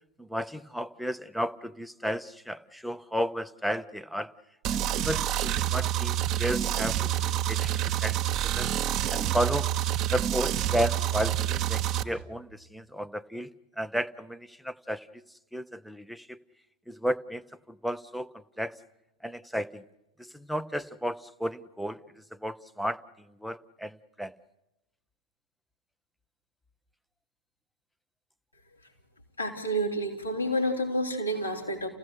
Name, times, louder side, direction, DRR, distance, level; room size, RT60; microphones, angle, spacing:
voice 1, 0.2-4.3 4.7-8.7 9.1-9.7 10.1-13.5 13.8-15.2 15.5-16.4 16.9-18.8 19.2-19.8 20.2-24.3, equal, ahead, 13 dB, 0.8 m, -33 dB
sound 1, 4.6-12.0, right 12 dB, 35° right, 1.2 m, -28 dB
voice 2, 29.4-31.9, equal, 85° left, -1 dB, 4.1 m, -29 dB
29.0 x 16.5 x 8.1 m, 0.94 s
figure-of-eight pair, 90°, 0 cm